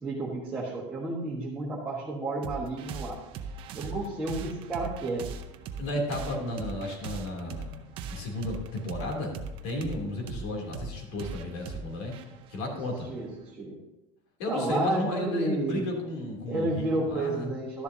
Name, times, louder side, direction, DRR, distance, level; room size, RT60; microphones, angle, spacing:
voice 1, 0.0-3.2 3.7-5.2 13.1-13.3 13.6-13.8 14.5-15.9 16.5-17.8, right 2 dB, 10° right, -6 dB, 1.4 m, -31 dB
sound 1, 2.4-13.5, right 5 dB, 35° right, 0.7 m, -40 dB
voice 2, 5.8-7.7 8.1-9.3 9.6-12.2 12.5-13.1 14.4-17.5, left 1 dB, 75° left, 0 dB, 3.0 m, -33 dB
12.5 x 10.5 x 2.8 m, 0.93 s
cardioid pair, 175°, 15 cm